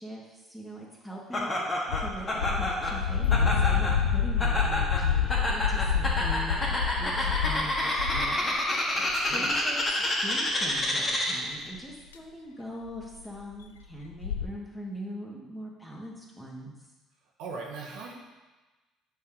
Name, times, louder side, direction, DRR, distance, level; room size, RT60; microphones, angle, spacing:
voice 1, 0.0-1.5 2.0-9.0 9.3-9.8 10.2-16.7, equal, 5° left, -3 dB, 1.9 m, -41 dB
Laughter, 1.3-11.6, left 1 dB, 30° left, 1.7 m, -29 dB
sound 1, 1.9-8.4 9.1-9.6 9.8-9.9 10.7-10.8 11.7-11.8 12.1-12.2 12.9-13.1 13.3-13.4 13.6-13.7 14.0-14.5, left 7 dB, 85° left, 0.4 m, -28 dB
voice 2, 8.9-9.5 17.4-18.1, right 4 dB, 65° right, -2 dB, 1.1 m, -40 dB
8.3 x 4.6 x 3.7 m, 1.2 s
figure-of-eight pair, 55°, 0 cm